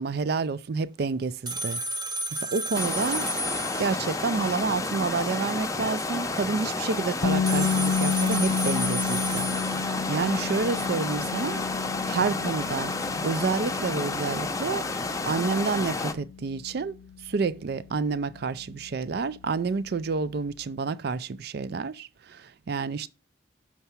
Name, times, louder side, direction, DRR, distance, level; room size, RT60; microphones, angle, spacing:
voice 1, 0.0-1.8 2.5-3.3 3.8-9.5 9.7-11.6 12.1-12.9 13.2-14.9 15.3-17.0 17.2-23.1, right 4 dB, 60° right, 0.4 m, -29 dB
sound 1, 1.5-4.4 7.5-10.3, right 1 dB, 25° right, 0.8 m, -32 dB
sound 2, 2.7-16.1, left 3 dB, 20° left, 0.6 m, -31 dB
sound 3, 7.2-19.1, left 6 dB, 70° left, 0.3 m, -31 dB
6.8 x 4.7 x 5.6 m
head